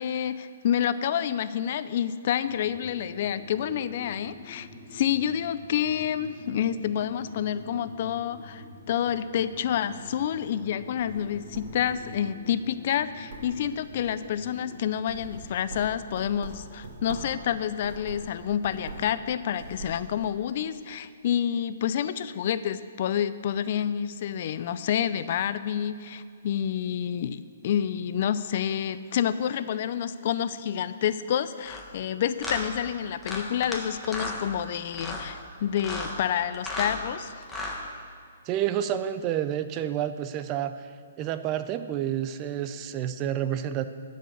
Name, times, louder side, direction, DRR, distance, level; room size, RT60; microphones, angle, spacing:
voice 1, 0.0-37.4, left 9 dB, 50° left, 13 dB, 0.5 m, -28 dB
sound 1, 2.5-14.8, left 2 dB, 25° left, 1.9 m, -46 dB
sound 2, 10.9-12.3 12.7-13.0 13.3-14.3 14.8-17.4 17.8-19.2 19.4-20.0, right 2 dB, 50° right, 3.0 m, -43 dB
sound 3, 31.6-31.8 32.4-32.6 33.2-33.8 34.0-34.4 34.9-35.2 35.8-36.1 36.5-37.0 37.4-37.8, left 2 dB, 5° left, 1.5 m, -34 dB
voice 2, 38.5-40.7 41.2-43.9, right 10 dB, 30° right, 11 dB, 0.6 m, -29 dB
11.5 x 5.4 x 7.9 m, 2.3 s
hypercardioid pair, 140°, 0 cm